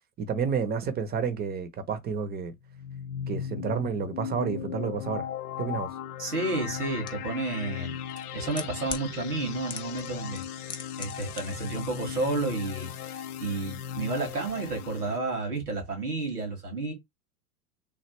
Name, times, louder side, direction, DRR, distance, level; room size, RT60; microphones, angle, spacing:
voice 1, 0.2-2.5 3.3-5.2 5.6-5.9, right 6 dB, 20° right, 0.7 m, -30 dB
sound 1, 2.6-15.2, left 9 dB, 80° left, 0.6 m, -37 dB
voice 2, 6.2-7.9 8.3-10.4 11.0-16.9, right 3 dB, 90° right, 1.8 m, -31 dB
sound 2, 7.1-7.2 8.1-9.1 9.7-10.1 10.4-11.4 11.7-11.8, left 6 dB, 10° left, 0.4 m, -37 dB
3.3 x 2.4 x 3.0 m
hypercardioid pair, 95°, 44 cm